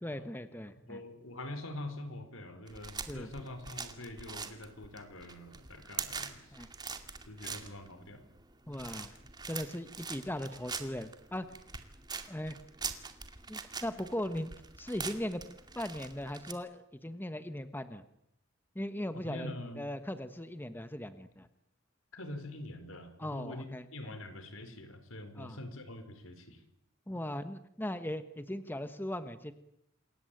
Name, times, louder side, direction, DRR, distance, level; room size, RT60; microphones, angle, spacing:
voice 1, 0.0-1.0 3.1-3.3 6.5-6.7 8.7-9.2 9.5-11.5 12.3-12.6 13.5-14.5 14.8-15.4 15.7-18.0 18.7-19.5 19.8-21.5 23.2-24.1 25.3-25.6 27.1-29.5, left 1 dB, 10° left, 11 dB, 1.3 m, -39 dB
voice 2, 0.9-6.4 7.3-8.2 19.1-19.9 22.1-26.6, left 1 dB, 80° left, 9 dB, 4.6 m, -44 dB
sound 1, 2.7-16.5, right 5 dB, 20° right, 2.3 m, -44 dB
28.0 x 21.5 x 9.1 m, 0.80 s
head